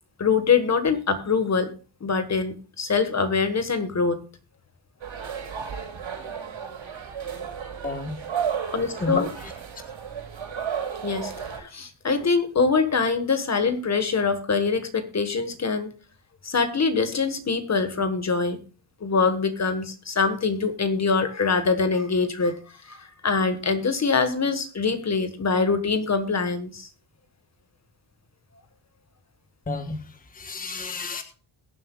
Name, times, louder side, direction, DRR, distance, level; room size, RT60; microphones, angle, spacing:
voice 1, 0.2-1.7 2.0-4.2 8.7-9.3 11.0-11.3 11.6-15.9 16.4-18.6 19.0-22.5 22.9-26.9, left 4 dB, 35° left, 9 dB, 1.5 m, -24 dB
sound 1, 5.0-11.6, right 7 dB, 75° right, 6.4 m, -33 dB
voice 2, 7.8-8.1 9.0-9.5 29.7-31.2, left 2 dB, 20° left, 7 dB, 1.3 m, -31 dB
22.0 x 7.7 x 2.4 m, 0.38 s
wide cardioid pair, 135°, 46 cm